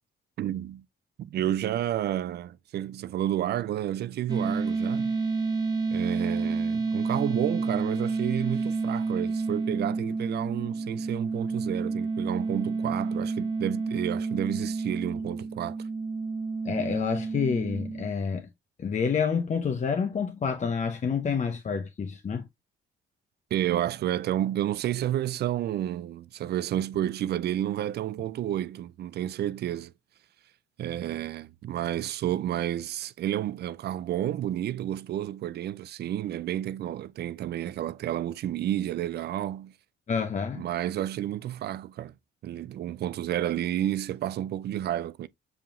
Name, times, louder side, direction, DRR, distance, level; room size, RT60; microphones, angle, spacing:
voice 1, 0.4-0.8 1.2-5.2 5.9-15.8 23.5-29.9 30.8-39.7 40.5-42.1 42.4-45.3, right 12 dB, 55° right, 0.4 m, -31 dB
sound 1, 4.3-18.1, right 4 dB, 20° right, 1.1 m, -29 dB
voice 2, 16.6-18.5 18.8-22.4 40.1-40.7, left 6 dB, 35° left, 0.7 m, -28 dB
7.0 x 2.8 x 2.5 m
cardioid pair, 90°, 20 cm